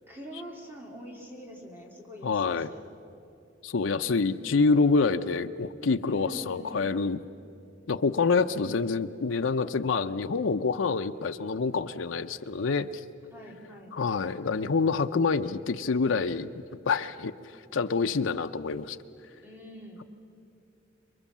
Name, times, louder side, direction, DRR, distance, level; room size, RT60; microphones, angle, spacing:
voice 1, 0.1-2.8 6.1-6.8 13.3-13.9 19.4-20.0, equal, 10° right, 0 dB, 2.7 m, -44 dB
voice 2, 2.2-2.7 3.6-7.2 7.9-13.0 13.9-16.5 16.9-17.3 17.7-19.0, left 4 dB, 85° left, 7 dB, 0.6 m, -26 dB
27.0 x 22.5 x 7.3 m, 2.7 s
head